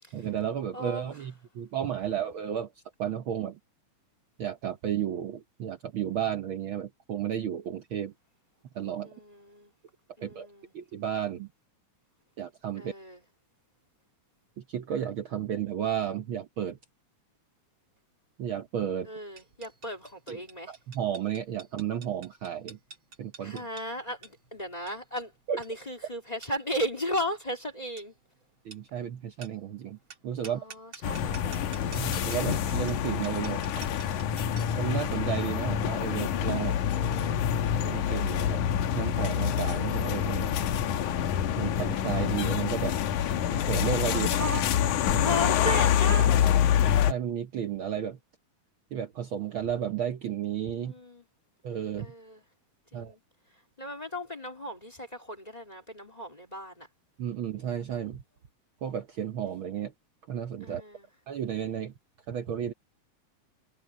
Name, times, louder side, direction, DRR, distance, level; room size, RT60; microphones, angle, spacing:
voice 1, 0.1-2.7 3.0-3.6 4.4-8.1 8.7-9.1 10.2-10.5 10.7-11.5 12.4-12.9 14.6-16.8 18.4-19.1 20.3-20.4 20.7-22.8 23.2-23.6 25.5-25.6 28.6-30.0 30.2-30.6 31.9-33.6 34.8-36.8 37.8-40.5 41.6-43.0 43.5-44.3 45.1-45.2 47.1-48.2 48.9-50.9 51.6-52.1 52.9-53.1 57.2-58.2 58.8-59.9 60.3-60.8 61.3-61.9 62.3-62.7, right 9 dB, 65° right, 1.3 m, -33 dB
voice 2, 0.7-1.1 9.0-9.7 10.2-10.7 12.7-13.2 19.0-20.8 23.4-25.3 25.6-28.1 30.4-32.1 36.9-37.5 44.1-44.7 45.1-46.8 50.7-51.2 52.0-52.4 52.9-53.2 53.5-56.9 60.6-61.1, equal, 15° left, 2.7 m, -36 dB
sound 1, 19.4-34.8, right 5 dB, 40° right, 3.8 m, -51 dB
sound 2, 31.0-47.1, left 9 dB, 90° left, 2.6 m, -26 dB
omnidirectional pair, 3.4 m